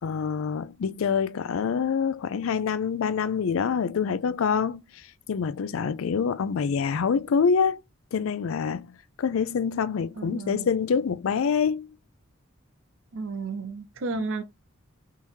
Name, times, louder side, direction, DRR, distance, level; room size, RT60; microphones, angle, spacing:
voice 1, 0.0-7.8 8.1-8.9 9.2-11.9 14.1-14.3, left 6 dB, 80° left, 0.4 m, -26 dB
voice 2, 10.2-10.7 13.1-14.4, right 4 dB, 70° right, 0.6 m, -32 dB
3.6 x 2.9 x 4.4 m
head